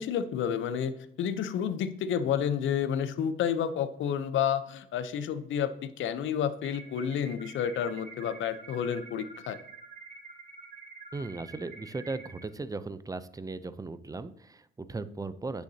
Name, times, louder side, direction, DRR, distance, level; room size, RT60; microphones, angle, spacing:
voice 1, 0.0-9.6, left 8 dB, 75° left, 12 dB, 0.7 m, -30 dB
sound 1, 6.6-12.4, right 4 dB, 40° right, 1.5 m, -48 dB
voice 2, 11.1-15.6, right 3 dB, 15° right, 14 dB, 0.5 m, -37 dB
9.7 x 6.6 x 2.8 m, 0.69 s
cardioid pair, 90°, 20 cm